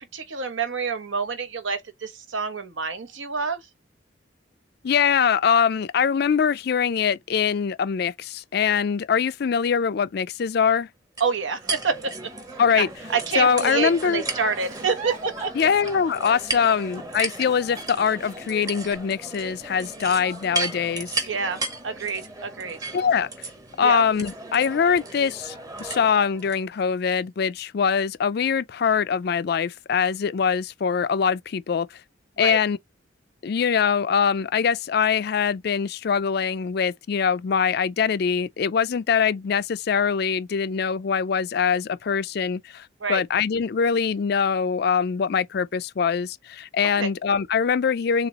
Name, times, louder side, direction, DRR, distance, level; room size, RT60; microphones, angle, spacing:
voice 1, 0.0-3.6 11.2-12.3 12.7-12.9 13.1-15.5 21.3-22.8 23.8-24.0 32.4-32.6 43.0-43.2 47.0-47.1, right 5 dB, 80° right, 1.1 m, -27 dB
voice 2, 4.8-10.9 12.6-12.9 13.4-14.2 15.5-21.3 22.9-23.3 23.8-32.0 32.4-32.8 33.4-48.3, left 6 dB, 55° left, 0.4 m, -23 dB
sound 1, 11.2-26.6, right 2 dB, 20° right, 0.9 m, -35 dB
Giggle, 12.9-19.2 19.6-20.6 21.1-22.2 22.7-23.0, right 5 dB, 35° right, 1.9 m, -43 dB
6.6 x 2.4 x 2.9 m
head